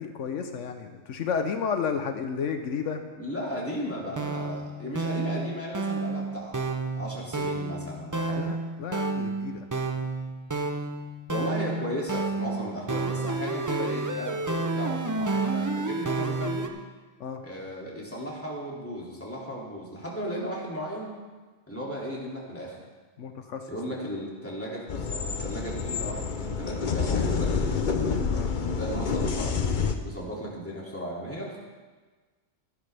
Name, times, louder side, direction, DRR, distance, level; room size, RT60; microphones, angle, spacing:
voice 1, 0.0-3.0 8.4-9.7 17.2-17.4 23.2-23.7 28.3-28.5, left 6 dB, 80° left, 6 dB, 1.1 m, -32 dB
voice 2, 3.2-6.6 7.0-8.5 11.3-16.7 17.4-21.1 21.7-22.8 23.7-27.5 28.6-31.6, equal, 10° left, -5 dB, 2.5 m, -35 dB
sound 1, 4.1-16.7, right 3 dB, 25° right, 0.4 m, -30 dB
sound 2, 24.9-29.9, left 5 dB, 45° left, 0.8 m, -28 dB
15.0 x 11.0 x 3.4 m, 1.3 s
omnidirectional pair, 1.2 m